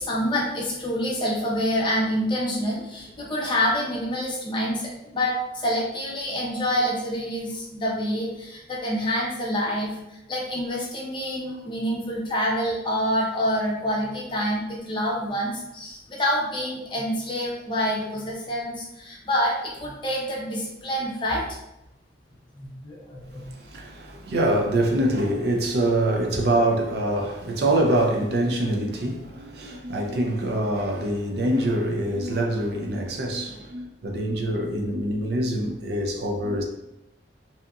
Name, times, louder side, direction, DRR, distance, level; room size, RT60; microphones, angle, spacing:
voice 1, 0.0-9.9 10.3-21.4 22.6-23.4, equal, 25° left, 0.6 m, -27 dB
voice 2, 23.4-36.6, right 1 dB, 55° right, 0.4 m, -25 dB
2.7 x 2.4 x 2.3 m
head